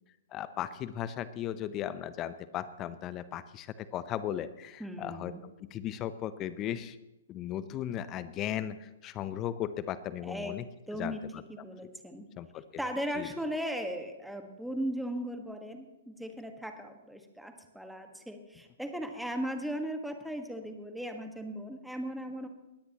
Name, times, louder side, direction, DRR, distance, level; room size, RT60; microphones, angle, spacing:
voice 1, 0.3-5.3 5.6-7.0 7.3-10.6 10.9-11.4 12.4-12.6 13.2-13.3, left 11 dB, 30° left, 14 dB, 0.7 m, -36 dB
voice 2, 4.8-5.4 10.2-10.5 10.9-11.2 11.5-12.2 12.8-22.5, equal, ahead, 5 dB, 1.5 m, -37 dB
20.5 x 17.5 x 3.0 m, 1.0 s
figure-of-eight pair, 115°, 0 cm